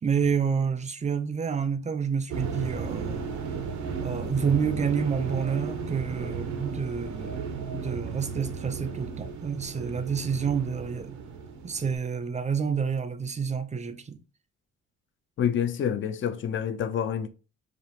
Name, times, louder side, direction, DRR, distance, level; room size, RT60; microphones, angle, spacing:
voice 1, 0.0-3.3 4.0-7.4 7.7-11.2 11.6-14.2, right 6 dB, 25° right, 0.5 m, -29 dB
sound 1, 2.3-12.0, right 5 dB, 70° right, 0.8 m, -35 dB
voice 2, 15.4-17.3, left 8 dB, 40° left, 0.5 m, -27 dB
5.0 x 2.4 x 2.8 m
cardioid pair, 90°, 30 cm